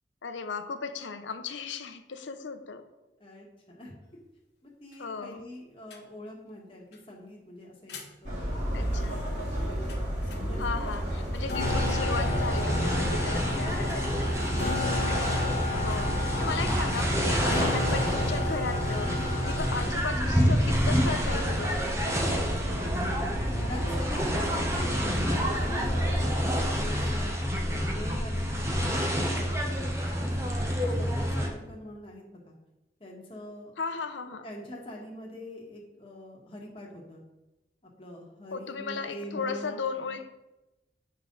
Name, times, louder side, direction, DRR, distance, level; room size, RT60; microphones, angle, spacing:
voice 1, 0.2-2.9 5.0-5.4 8.7-9.2 10.6-14.3 15.8-19.2 19.4-21.9 33.8-34.5 38.5-40.3, left 4 dB, 90° left, 8 dB, 0.7 m, -36 dB
voice 2, 3.2-4.0 4.6-7.9 8.2-9.8 10.3-11.3 14.4-15.0 22.7-23.2 23.4-27.3 27.7-29.8 30.1-32.5 33.0-33.7 34.4-37.2 38.0-39.9, left 1 dB, 30° left, -2 dB, 1.6 m, -44 dB
sound 1, 5.9-6.0 7.9-8.1 9.9-10.0 10.3-10.4 10.9-11.0 11.4-19.9, left 2 dB, 65° left, 1.3 m, -32 dB
sound 2, 8.2-26.4, equal, 40° right, 2.8 m, -34 dB
sound 3, 11.6-31.5, equal, 15° right, 1.0 m, -28 dB
9.4 x 5.4 x 3.9 m, 1.0 s
head